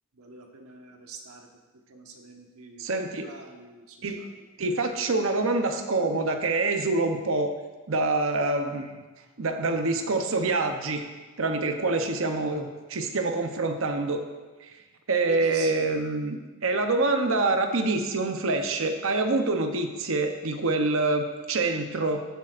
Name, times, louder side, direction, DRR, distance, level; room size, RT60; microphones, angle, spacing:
voice 1, 0.1-1.5 1.9-2.8 3.1-4.5 15.3-16.0, right 2 dB, 80° right, 2 dB, 1.2 m, -44 dB
voice 2, 2.8-3.3 4.0-4.3 4.6-7.5 7.9-8.9 9.4-11.0 11.4-14.2 14.6-14.7 15.1-22.3, right 3 dB, 65° right, 6 dB, 0.7 m, -26 dB
14.0 x 7.7 x 2.5 m, 1.2 s
head